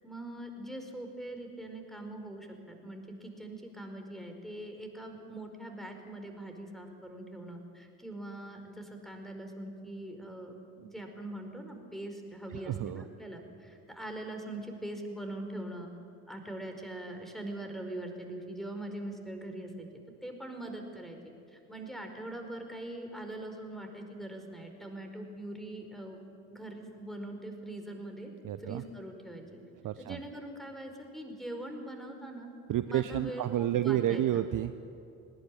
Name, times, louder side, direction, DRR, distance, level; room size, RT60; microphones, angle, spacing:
voice 1, 0.0-15.9 16.3-19.9 20.2-26.2 26.5-28.3 28.6-29.6 30.0-32.5 32.8-34.4, right 1 dB, ahead, 4 dB, 4.8 m, -42 dB
voice 2, 12.5-13.0 28.4-28.8 29.8-30.2 32.7-34.7, right 12 dB, 45° right, 12 dB, 0.8 m, -30 dB
20.0 x 18.5 x 10.0 m, 2.6 s
figure-of-eight pair, 50°, 44 cm